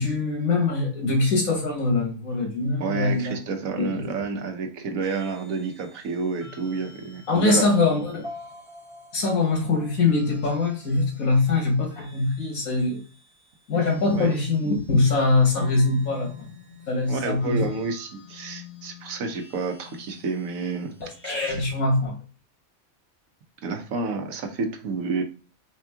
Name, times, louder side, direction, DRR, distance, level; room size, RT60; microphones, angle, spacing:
voice 1, 0.0-3.3 3.8-4.0 7.3-8.3 9.1-13.0 13.7-16.5 16.9-17.6 21.2-22.2, left 3 dB, 80° left, 1.9 m, -23 dB
voice 2, 2.8-7.7 14.1-14.3 17.1-21.1 21.5-21.6 23.6-25.2, right 4 dB, 75° right, 1.2 m, -30 dB
sound 1, 5.0-21.7, left 2 dB, 20° right, 1.5 m, -45 dB
4.3 x 3.1 x 3.5 m
omnidirectional pair, 1.5 m